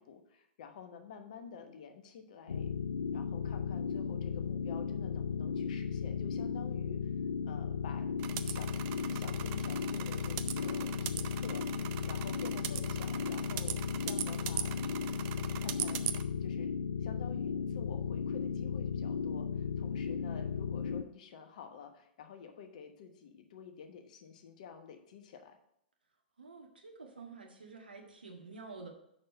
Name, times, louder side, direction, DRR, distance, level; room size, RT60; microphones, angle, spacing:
voice 1, 0.0-2.7 3.1-7.1 7.4-8.7 9.0-13.8 14.0-14.8 15.6-16.1 16.4-25.6, left 6 dB, 45° left, 6 dB, 1.1 m, -50 dB
sound 1, 2.5-21.0, left 6 dB, 70° left, 0.4 m, -35 dB
sound 2, 8.2-16.2, right 13 dB, 30° right, 0.5 m, -40 dB
voice 2, 26.4-28.9, right 4 dB, 70° right, 2 dB, 1.7 m, -49 dB
6.6 x 5.9 x 5.6 m, 0.77 s
figure-of-eight pair, 110°, 5 cm